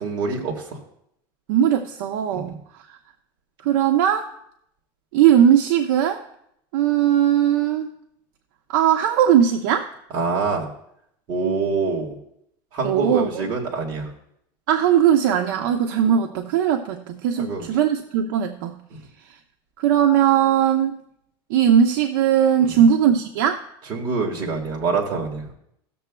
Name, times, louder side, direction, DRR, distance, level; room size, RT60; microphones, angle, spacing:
voice 1, 0.0-0.6 2.3-2.4 10.1-10.7 11.3-12.1 12.7-14.1 17.4-17.7 22.6-22.8 23.9-25.5, right 4 dB, 40° right, -3 dB, 1.7 m, -25 dB
voice 2, 1.5-2.6 3.6-4.3 5.1-6.2 6.7-7.9 8.7-9.9 12.8-13.5 14.7-18.8 19.8-21.0 21.5-23.6, right 9 dB, 75° right, 4 dB, 0.7 m, -19 dB
18.0 x 6.8 x 2.3 m, 0.75 s
cardioid pair, 165°, 12 cm